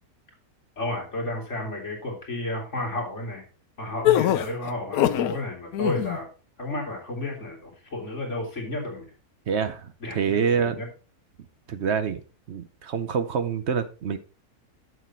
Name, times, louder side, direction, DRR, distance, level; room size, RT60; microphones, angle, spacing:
voice 1, 0.8-3.4 3.8-6.3 6.6-9.1 10.0-10.9, left 1 dB, 50° left, 0 dB, 3.2 m, -32 dB
sound 1, 4.0-5.4 5.7-6.2, left 12 dB, 75° left, 1.1 m, -22 dB
voice 2, 9.5-10.8 11.7-12.2 12.5-14.2, right 6 dB, 55° right, 11 dB, 0.9 m, -26 dB
7.8 x 7.4 x 4.3 m, 0.33 s
omnidirectional pair, 1.6 m